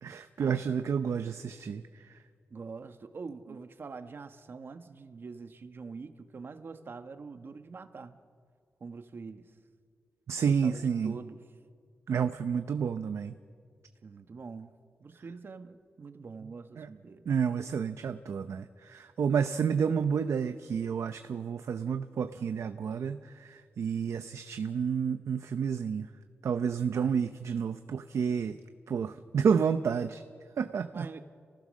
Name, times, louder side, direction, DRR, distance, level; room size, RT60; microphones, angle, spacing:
voice 1, 0.0-1.8 10.3-11.2 12.1-13.3 16.8-16.9 17.3-26.1 26.4-28.6 28.9-30.2 30.6-31.1, right 6 dB, 85° right, 9 dB, 0.7 m, -30 dB
voice 2, 2.5-8.2 8.8-9.5 10.4-11.4 14.0-14.7 15.0-17.2 26.9-27.1 30.9-31.2, right 4 dB, 50° right, 8 dB, 1.2 m, -44 dB
30.0 x 15.5 x 6.4 m, 2.1 s
wide cardioid pair, 135°, 5 cm